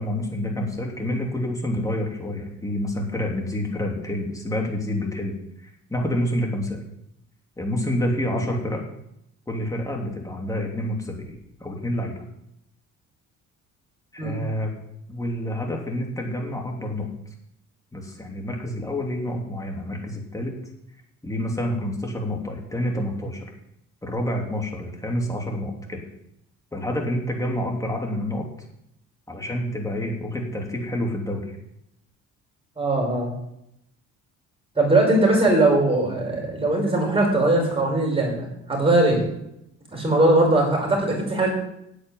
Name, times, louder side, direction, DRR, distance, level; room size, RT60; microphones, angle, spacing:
voice 1, 0.0-5.4 5.9-6.8 7.6-8.8 9.5-12.2 14.1-14.7 15.1-17.1 17.9-20.6 21.2-23.5 24.0-26.0 26.7-28.5 29.3-31.6, left 1 dB, 10° left, 0 dB, 3.3 m, -28 dB
voice 2, 32.8-33.3 34.8-39.2 39.9-41.5, right 2 dB, 20° right, 0 dB, 5.6 m, -20 dB
8.7 x 8.6 x 9.5 m, 0.79 s
cardioid pair, 130°, 30 cm